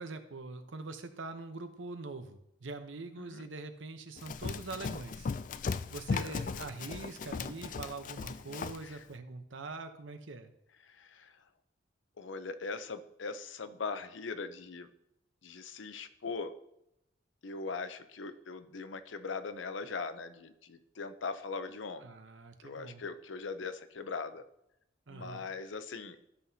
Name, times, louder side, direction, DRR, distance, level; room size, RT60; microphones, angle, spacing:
voice 1, 0.0-5.3 5.9-10.5 22.0-23.0 25.1-25.5, right 3 dB, 85° right, 8 dB, 0.8 m, -43 dB
voice 2, 3.2-3.5 6.2-6.3 8.8-9.0 10.8-11.4 12.2-14.9 15.4-16.5 17.4-22.1 22.6-24.4 25.1-26.2, left 4 dB, 85° left, 10 dB, 0.7 m, -40 dB
Run, 4.2-8.9, left 5 dB, 45° left, 0.3 m, -37 dB
13.0 x 5.8 x 2.8 m, 0.81 s
head